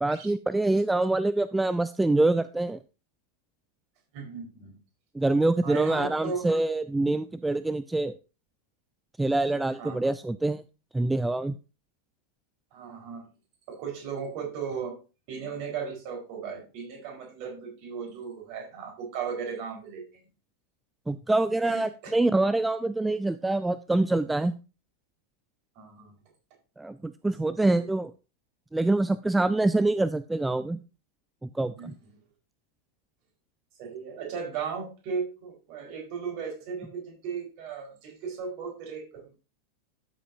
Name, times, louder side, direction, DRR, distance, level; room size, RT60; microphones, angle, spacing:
voice 1, 0.0-2.8 5.1-8.1 9.2-10.6 10.9-11.5 21.1-24.5 26.8-28.1 28.7-30.8 31.4-31.9, right 2 dB, 5° right, 14 dB, 0.3 m, -25 dB
voice 2, 4.1-4.7 5.6-6.5 9.8-10.0 12.7-13.2 13.7-15.0 15.3-20.0 21.6-22.1 25.8-26.1 27.4-27.8 31.8-31.9 33.8-39.3, right 6 dB, 45° right, 1 dB, 4.5 m, -36 dB
13.0 x 7.5 x 2.7 m, 0.32 s
figure-of-eight pair, 90°, 0 cm